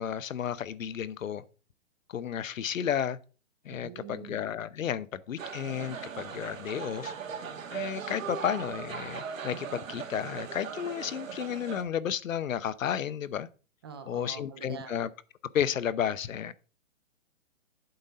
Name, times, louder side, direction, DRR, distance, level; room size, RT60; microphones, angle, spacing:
voice 1, 0.0-1.4 2.1-3.2 3.6-7.1 7.7-13.5 14.1-15.1 15.5-16.5, left 9 dB, 85° left, 0.8 m, -32 dB
voice 2, 3.7-4.4 13.8-15.0, right 6 dB, 20° right, 0.5 m, -44 dB
sound 1, 5.4-11.8, right 7 dB, 90° right, 1.7 m, -39 dB
7.9 x 4.1 x 6.4 m
hypercardioid pair, 155°, 39 cm